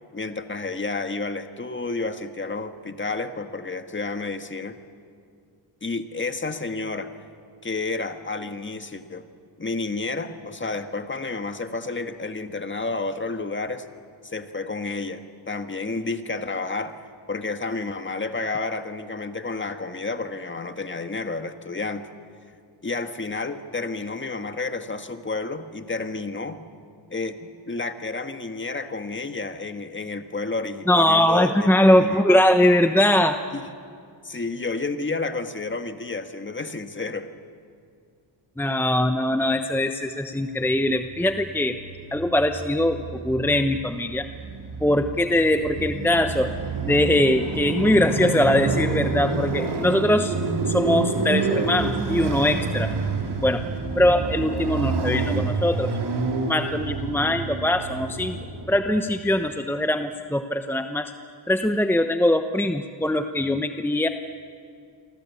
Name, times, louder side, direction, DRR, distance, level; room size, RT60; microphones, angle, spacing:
voice 1, 0.1-4.8 5.8-7.1 7.6-9.3 9.6-13.9 14.2-17.0 17.3-22.0 22.8-26.6 27.1-32.5 33.5-33.6 34.2-37.3, left 3 dB, 25° left, 8 dB, 1.7 m, -30 dB
voice 2, 30.9-33.4 38.6-41.8 42.1-44.3 44.8-46.5 46.8-50.3 50.7-52.9 53.4-53.6 54.0-55.9 56.5-58.4 58.7-61.1 61.5-64.1, left 1 dB, 5° left, 7 dB, 1.0 m, -21 dB
Motorcycle, 41.0-59.2, right 3 dB, 60° right, 4.1 m, -28 dB
29.0 x 23.5 x 8.5 m, 2.3 s
cardioid pair, 90°, 46 cm